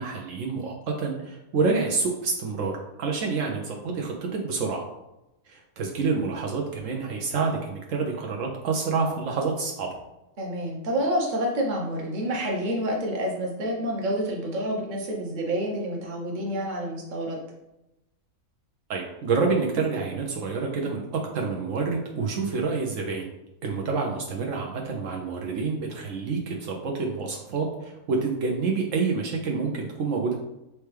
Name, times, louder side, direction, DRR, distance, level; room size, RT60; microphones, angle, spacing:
voice 1, 0.0-2.7 3.0-4.8 5.5-9.9 18.9-23.3 23.6-30.4, right 4 dB, 75° right, 0 dB, 1.0 m, -28 dB
voice 2, 10.4-17.4, equal, 40° right, -1 dB, 0.9 m, -28 dB
4.4 x 3.3 x 3.3 m, 0.90 s
omnidirectional pair, 1.4 m